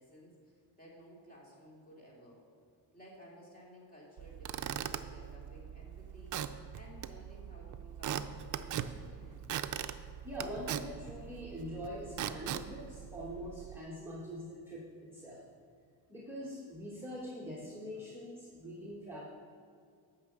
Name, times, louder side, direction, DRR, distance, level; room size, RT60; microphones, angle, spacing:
voice 1, 0.0-2.4 2.9-6.4 6.7-9.6, equal, 20° left, -4 dB, 2.7 m, -56 dB
Squeak / Wood, 4.2-13.8, right 9 dB, 45° right, 0.4 m, -41 dB
voice 2, 10.2-15.4 16.1-19.2, equal, 5° right, -6 dB, 1.2 m, -43 dB
9.8 x 5.9 x 7.2 m, 2.2 s
cardioid pair, 145°, 42 cm